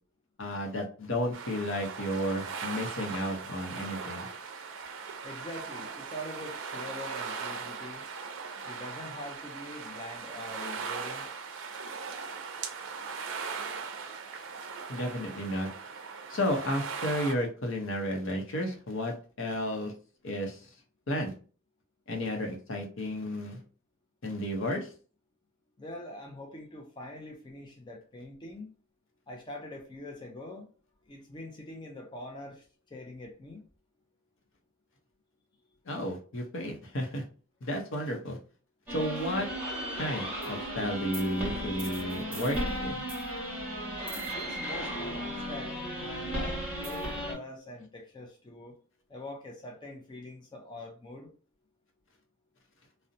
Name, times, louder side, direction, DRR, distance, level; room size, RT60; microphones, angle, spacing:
voice 1, 0.4-4.3 14.9-15.7 16.3-19.9 20.2-20.7 21.1-21.3 22.1-23.6 24.2-24.9 35.9-37.2 37.6-38.4 38.9-39.5 39.9-43.0, equal, 60° left, 0.7 m, -32 dB
sound 1, 1.3-17.3, right 5 dB, 60° right, 0.4 m, -39 dB
voice 2, 5.2-8.1 8.6-11.3 25.8-28.7 29.3-30.7 31.1-32.6 32.9-33.7 44.3-48.8 49.1-51.3, left 1 dB, 20° left, 0.4 m, -44 dB
sound 2, 38.9-47.3, equal, 5° right, 1.1 m, -35 dB
2.6 x 2.0 x 2.6 m
head